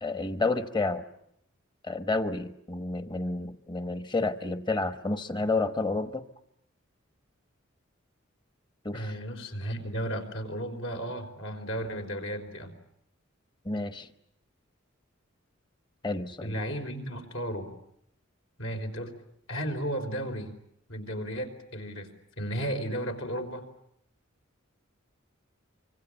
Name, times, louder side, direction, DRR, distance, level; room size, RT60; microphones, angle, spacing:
voice 1, 0.0-1.0 1.8-6.2 8.8-9.1 13.6-14.1 16.0-16.5, left 3 dB, 20° left, 10 dB, 1.1 m, -30 dB
voice 2, 8.9-12.7 16.4-17.7 18.6-19.1 19.5-20.5 20.9-22.1 22.4-23.7, equal, 75° left, 3 dB, 4.6 m, -34 dB
25.5 x 25.0 x 8.9 m, 0.75 s
head